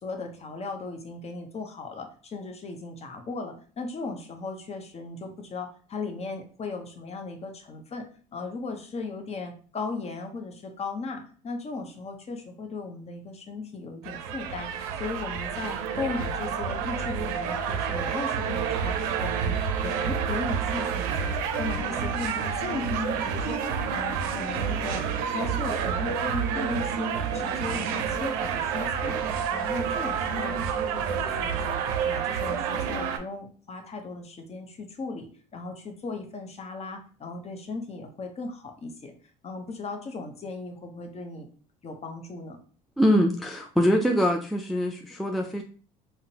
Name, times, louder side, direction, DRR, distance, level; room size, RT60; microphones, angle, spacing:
voice 1, 0.0-8.1 8.3-14.7 15.0-23.6 23.9-29.2 29.5-31.8 32.0-39.1 39.4-41.5 41.8-42.6, left 3 dB, 35° left, 5 dB, 0.8 m, -37 dB
sound 1, 14.0-33.2, right 7 dB, 80° right, 0.5 m, -29 dB
voice 2, 43.0-45.6, equal, ahead, 2 dB, 0.3 m, -23 dB
3.7 x 2.1 x 2.8 m, 0.41 s
supercardioid pair, 80°, 19 cm